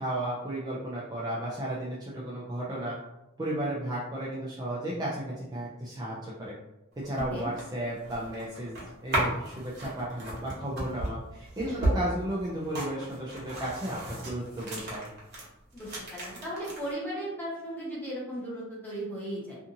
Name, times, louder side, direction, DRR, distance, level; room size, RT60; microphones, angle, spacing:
voice 1, 0.0-3.0 3.4-6.5 7.0-15.1, right 1 dB, 20° right, -6 dB, 0.4 m, -34 dB
sound 1, 6.9-15.4 15.7-16.9, right 1 dB, 55° right, 1.0 m, -34 dB
voice 2, 11.6-11.9 15.7-19.6, equal, 10° left, -7 dB, 0.9 m, -36 dB
2.6 x 2.5 x 2.6 m, 0.91 s
head